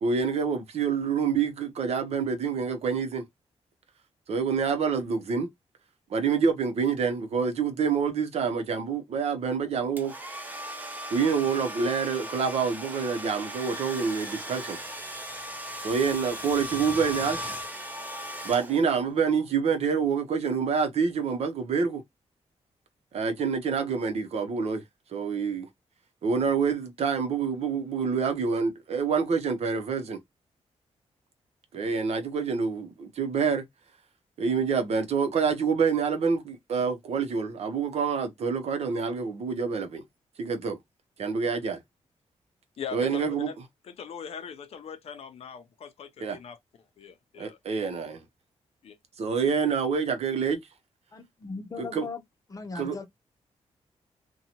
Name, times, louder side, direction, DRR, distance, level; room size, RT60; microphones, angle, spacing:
voice 1, 0.0-3.2 4.3-5.5 6.1-10.1 11.1-14.8 15.8-17.4 18.4-22.0 23.1-24.8 25.1-25.7 26.2-30.2 31.7-33.6 34.4-40.0 40.4-40.8 41.2-41.8 42.9-43.5 46.2-46.4 47.4-48.2 49.2-50.6 51.8-52.1 52.7-53.0, right 5 dB, 65° right, 0.7 m, -27 dB
Domestic sounds home sounds, 10.0-19.1, equal, 15° right, 0.6 m, -37 dB
voice 2, 42.8-43.6 43.8-46.6 47.0-47.6 48.8-49.0, left 7 dB, 60° left, 0.5 m, -41 dB
voice 3, 51.1-52.2 52.5-53.0, left 4 dB, 30° left, 0.7 m, -38 dB
2.7 x 2.2 x 2.8 m
wide cardioid pair, 135°, 12 cm